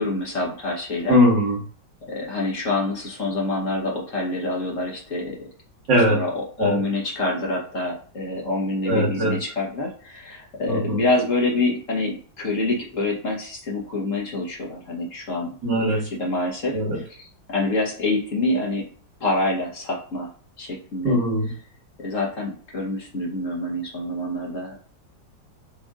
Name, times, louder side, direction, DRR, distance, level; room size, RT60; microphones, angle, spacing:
voice 1, 0.0-1.2 2.1-5.5 6.1-18.9 19.2-20.3 20.6-21.2 22.0-24.7, left 2 dB, 50° left, -2 dB, 1.4 m, -26 dB
voice 2, 1.1-1.6 5.9-6.2 6.6-6.8 8.9-9.3 10.7-11.0 15.6-16.0 16.7-17.0 21.0-21.5, equal, 70° right, -3 dB, 2.2 m, -20 dB
5.3 x 2.6 x 3.7 m, 0.43 s
omnidirectional pair, 2.0 m